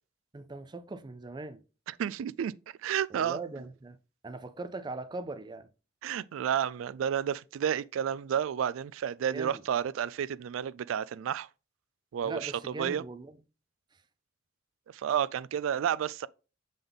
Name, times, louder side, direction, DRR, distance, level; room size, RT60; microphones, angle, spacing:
voice 1, 0.3-1.6 3.1-4.0 4.2-5.7 9.3-9.6 12.2-13.4, right 3 dB, 20° right, 0.4 m, -40 dB
voice 2, 1.9-2.5 2.8-3.4 6.0-11.5 12.1-12.5 12.8-13.0 14.9-16.3, right 9 dB, 85° right, 0.3 m, -31 dB
7.0 x 3.9 x 3.4 m
head